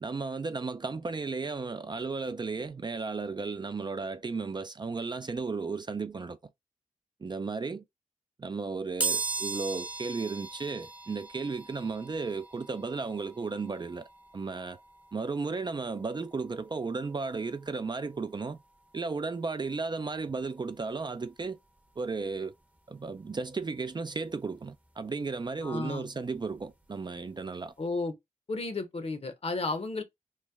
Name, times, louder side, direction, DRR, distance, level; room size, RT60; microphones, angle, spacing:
voice 1, 0.0-6.4 7.2-7.8 8.4-14.1 14.3-14.8 15.1-18.6 18.9-21.6 22.0-22.6 22.9-27.7, right 4 dB, 35° right, 0.4 m, -34 dB
sound 1, 9.0-19.7 20.1-20.2 21.4-21.5 21.8-23.9 24.2-26.8 27.2-27.4 27.7-27.8, right 4 dB, 10° right, 0.7 m, -40 dB
voice 2, 25.6-26.1 27.8-28.1 28.5-30.0, left 3 dB, 50° left, 0.9 m, -33 dB
3.1 x 2.1 x 3.3 m
cardioid pair, 50°, 13 cm